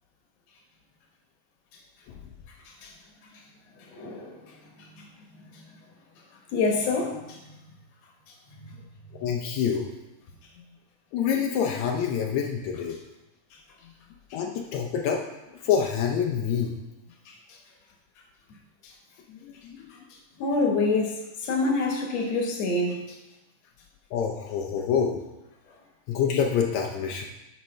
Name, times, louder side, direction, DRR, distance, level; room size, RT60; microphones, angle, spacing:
voice 1, 3.9-4.4 4.8-5.0 6.5-7.5 8.6-8.7 17.3-17.4 20.4-23.0, left 3 dB, 60° left, 1 dB, 2.0 m, -27 dB
voice 2, 9.2-9.9 11.1-13.0 14.3-15.2 15.6-16.7 19.3-19.9 24.1-25.2 26.1-27.3, left 7 dB, 80° left, 1 dB, 1.6 m, -26 dB
13.0 x 5.5 x 3.2 m, 0.96 s
omnidirectional pair, 4.2 m